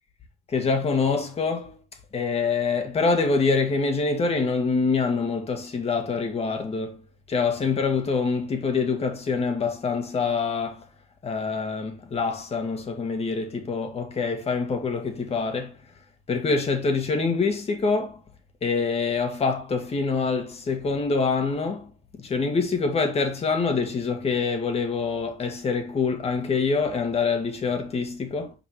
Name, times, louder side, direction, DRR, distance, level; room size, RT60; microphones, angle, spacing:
voice 1, 0.5-1.7 2.1-7.0 7.3-10.9 11.2-15.8 16.3-18.2 18.6-21.9 22.2-28.5, left 4 dB, 35° left, 1.9 m, -25 dB
6.9 x 5.2 x 3.2 m
cardioid pair, 110°, 17 cm